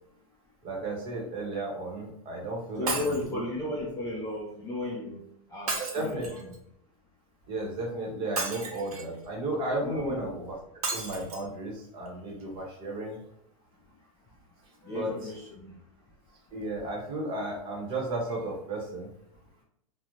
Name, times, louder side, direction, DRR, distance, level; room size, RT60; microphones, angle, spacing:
voice 1, 0.6-3.2 5.8-6.3 7.5-10.6 10.9-13.2 14.8-15.3 16.5-19.1, right 2 dB, 30° right, -1 dB, 0.8 m, -34 dB
voice 2, 2.8-5.2 5.5-6.4 9.8-10.2 14.8-15.7, left 1 dB, 15° left, -4 dB, 0.4 m, -34 dB
Shatter, 2.9-3.3 5.7-6.5 8.3-9.1 10.8-11.4 12.0-12.1 12.4-12.5, right 3 dB, 90° right, 1.0 m, -33 dB
2.5 x 2.0 x 3.0 m, 0.76 s
hypercardioid pair, 140°, 19 cm